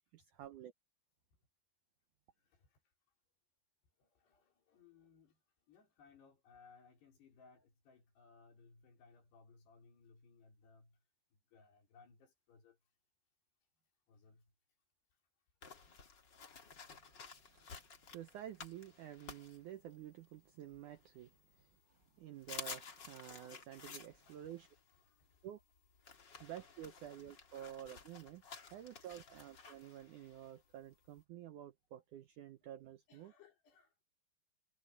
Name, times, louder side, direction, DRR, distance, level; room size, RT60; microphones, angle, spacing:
voice 1, 0.1-0.7 17.5-17.7 18.1-21.7 22.2-24.7 25.4-25.6 26.4-28.4 28.7-33.3, right 11 dB, 75° right, 1.8 m, -51 dB
voice 2, 2.4-2.8 4.0-11.0 11.3-12.8 14.1-14.5 15.8-16.1 24.2-24.4 24.9-25.4 33.1-33.9, left 5 dB, 80° left, 6.6 m, -65 dB
sound 1, 15.6-20.2 20.7-21.6 22.0-22.1 22.4-31.2, left 5 dB, 35° left, 2.0 m, -53 dB
omnidirectional pair, 4.7 m